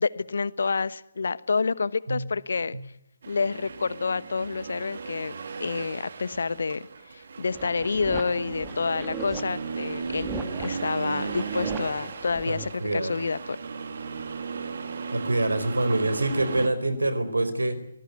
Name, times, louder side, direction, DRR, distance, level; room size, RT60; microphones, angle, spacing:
voice 1, 0.0-2.8 3.3-5.3 5.6-6.9 7.1-13.6, left 4 dB, 55° left, 18 dB, 1.1 m, -28 dB
Accelerating revving vroom, 3.2-16.7, right 5 dB, 50° right, 2.4 m, -36 dB
sound 1, 7.5-12.7, right 4 dB, 10° right, 2.7 m, -39 dB
voice 2, 12.5-13.1 15.1-17.8, right 2 dB, 70° right, 13 dB, 4.3 m, -26 dB
24.0 x 19.5 x 8.1 m, 0.79 s
figure-of-eight pair, 140°, 0 cm